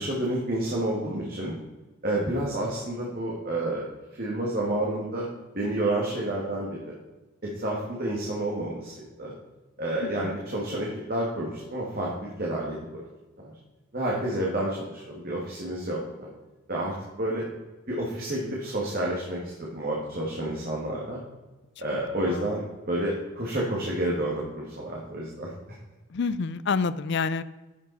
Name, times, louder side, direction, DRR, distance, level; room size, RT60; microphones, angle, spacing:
voice 1, 0.0-1.5 2.0-3.8 4.1-5.3 5.5-6.9 7.4-9.3 9.8-13.1 13.4-13.5 13.9-16.3 16.7-17.4 17.9-21.2 21.8-22.6 22.9-25.5, right 1 dB, 45° right, -4 dB, 1.9 m, -30 dB
voice 2, 26.1-27.4, left 5 dB, 55° left, 15 dB, 0.4 m, -28 dB
11.0 x 7.2 x 4.1 m, 1.2 s
head